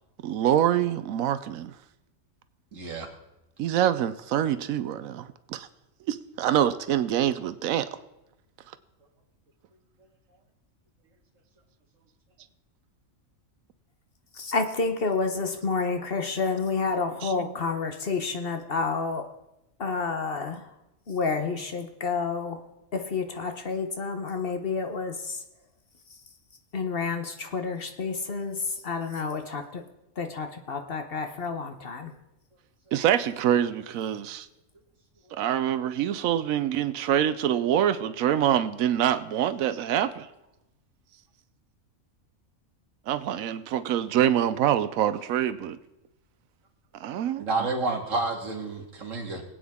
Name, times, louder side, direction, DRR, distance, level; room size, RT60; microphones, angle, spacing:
voice 1, 0.2-1.7 2.9-3.0 3.6-5.7 6.1-7.9 17.2-17.6 32.9-34.5 35.3-40.3 43.1-45.8 47.0-47.7, right 10 dB, 85° right, 1.0 m, -25 dB
voice 2, 2.7-3.1 47.4-49.4, right 3 dB, 70° right, 2.2 m, -29 dB
voice 3, 14.4-19.3 19.8-20.6 21.1-22.6 22.9-25.4 26.7-29.8 30.2-32.1, left 4 dB, 50° left, 1.0 m, -29 dB
22.0 x 8.7 x 3.6 m
omnidirectional pair, 1.4 m